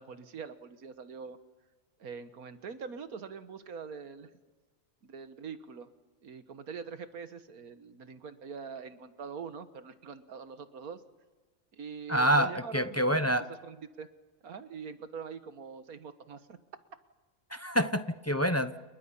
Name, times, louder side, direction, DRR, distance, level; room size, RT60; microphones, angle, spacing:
voice 1, 0.0-1.4 2.0-4.3 5.0-5.9 6.2-11.0 11.7-14.1 14.4-16.6, right 6 dB, 90° right, 10 dB, 1.8 m, -43 dB
voice 2, 12.1-13.4 17.5-18.8, equal, 15° left, 10 dB, 0.7 m, -27 dB
30.0 x 29.5 x 5.6 m, 1.2 s
omnidirectional pair, 1.5 m